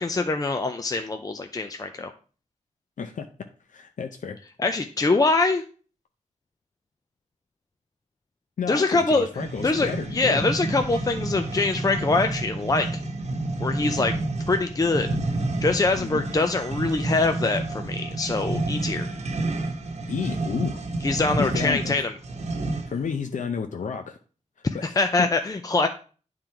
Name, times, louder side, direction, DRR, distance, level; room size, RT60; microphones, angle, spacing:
voice 1, 0.0-2.1 4.6-5.6 8.7-9.3 9.6-13.0 13.6-14.1 14.5-15.1 15.6-19.1 21.0-22.1 24.8-25.9, left 3 dB, 30° left, 6 dB, 0.5 m, -24 dB
voice 2, 3.0-3.3 3.7-4.4 8.6-10.4 16.0-16.2 20.1-20.8 21.4-21.9 22.9-24.2 24.7-24.9 25.2-25.3, left 6 dB, 80° left, 6 dB, 0.6 m, -31 dB
sound 1, 9.3-23.1, right 2 dB, 60° right, 1.0 m, -30 dB
9.1 x 3.8 x 4.5 m, 0.38 s
wide cardioid pair, 125°, 13 cm